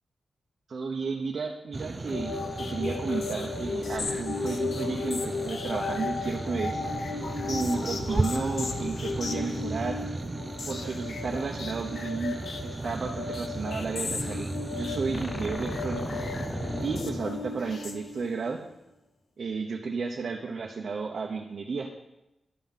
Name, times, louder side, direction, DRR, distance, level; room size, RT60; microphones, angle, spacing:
voice 1, 0.7-6.8 7.5-10.0 10.7-16.2 16.8-18.6 19.4-21.9, right 4 dB, 55° right, 1 dB, 1.0 m, -33 dB
sound 1, 1.7-17.0, right 2 dB, 25° right, 0.5 m, -35 dB
sound 2, 2.1-18.5, left 4 dB, 65° left, 1.0 m, -35 dB
sound 3, 15.1-18.5, left 2 dB, 30° left, 0.7 m, -38 dB
11.5 x 5.7 x 7.3 m, 0.93 s
wide cardioid pair, 125°, 0 cm